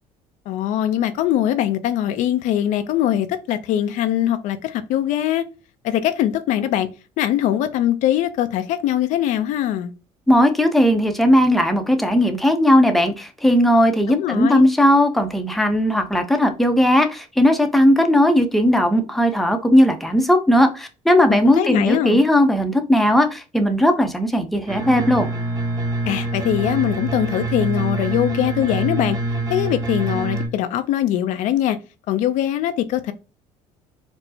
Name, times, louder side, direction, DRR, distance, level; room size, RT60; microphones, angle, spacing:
voice 1, 0.5-5.4 5.8-6.9 7.2-9.9 14.1-14.6 21.3-22.2 26.0-29.2 29.5-31.8 32.1-33.1, left 11 dB, 70° left, 0.4 m, -22 dB
voice 2, 10.3-25.3, equal, ahead, 0.6 m, -17 dB
sound 1, 24.7-30.5, right 2 dB, 30° right, 1.0 m, -25 dB
4.4 x 2.0 x 2.7 m
supercardioid pair, 100°, 13 cm